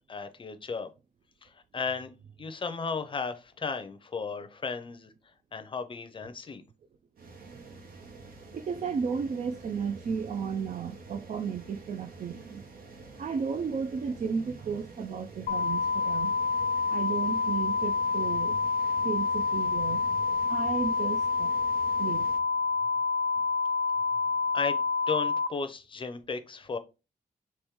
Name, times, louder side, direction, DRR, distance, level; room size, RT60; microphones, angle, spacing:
voice 1, 0.1-0.9 1.4-2.1 2.4-5.1 5.5-6.6 24.5-26.8, left 5 dB, 35° left, 0.6 m, -35 dB
sound 1, 7.2-22.4, right 3 dB, 80° right, 1.0 m, -49 dB
voice 2, 8.5-12.7 13.2-16.4 16.9-18.7 19.0-21.6 22.0-22.3, right 6 dB, 50° right, 0.4 m, -34 dB
sound 2, 15.5-25.5, left 4 dB, 80° left, 0.5 m, -28 dB
4.5 x 3.0 x 3.5 m
wide cardioid pair, 160°, 15 cm